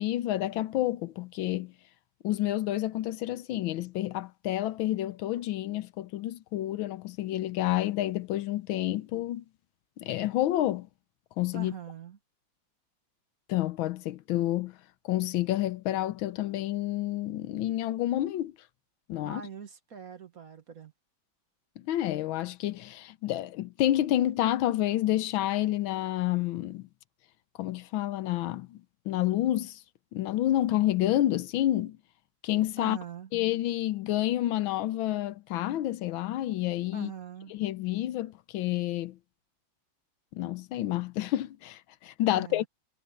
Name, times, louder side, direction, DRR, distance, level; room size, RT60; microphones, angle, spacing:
voice 1, 0.0-1.7 2.2-9.4 10.0-10.9 11.4-11.7 13.5-14.8 15.0-18.5 19.1-19.4 21.8-26.9 27.6-29.8 30.1-32.0 32.4-33.0 33.3-37.1 37.5-39.2 40.3-42.7, left 14 dB, 85° left, 1.5 m, -29 dB
voice 2, 11.5-12.2 19.2-20.9 32.8-33.3 36.9-37.5 42.3-42.7, right 7 dB, 50° right, 1.8 m, -43 dB
omnidirectional pair, 2.1 m